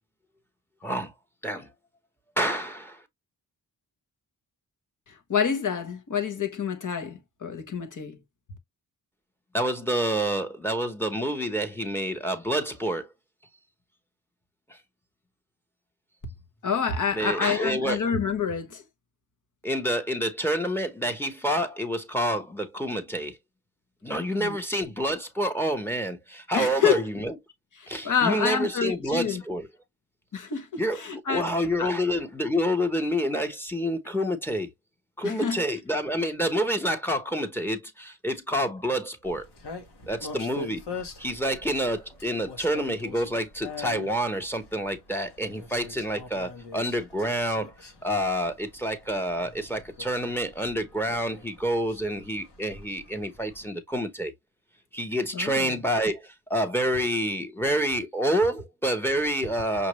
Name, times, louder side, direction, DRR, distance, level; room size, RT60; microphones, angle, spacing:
voice 1, 2.4-3.0 9.5-13.1 17.1-18.0 19.6-23.4 24.0-27.3 27.9-29.7 30.8-31.0 31.3-34.7 35.2-39.4 40.1-40.8 41.2-47.7 48.0-54.3 54.9-56.2 56.5-59.9, equal, 5° left, 1.0 m, -28 dB
voice 2, 5.1-8.2 16.6-18.8 24.4-24.6 26.5-27.0 27.8-29.4 30.3-32.0 35.2-35.6 55.3-55.8, left 7 dB, 50° left, 1.1 m, -28 dB
sound 1, 39.2-53.7, left 3 dB, 75° left, 1.5 m, -44 dB
5.9 x 2.6 x 3.0 m
wide cardioid pair, 130°, 40 cm